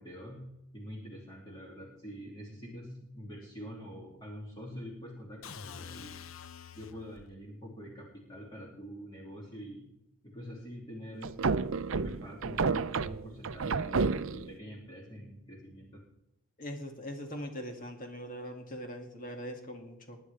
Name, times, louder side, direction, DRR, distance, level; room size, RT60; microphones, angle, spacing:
voice 1, 0.0-6.2 6.7-9.9 10.2-11.5 12.0-16.0, equal, 20° left, -3 dB, 2.7 m, -46 dB
sound 1, 5.4-7.4, left 7 dB, 70° left, 0.7 m, -47 dB
sound 2, 11.2-14.6, right 4 dB, 70° right, 0.6 m, -30 dB
voice 2, 16.6-20.2, equal, 40° left, 2 dB, 2.2 m, -41 dB
21.0 x 10.0 x 3.4 m, 0.82 s
head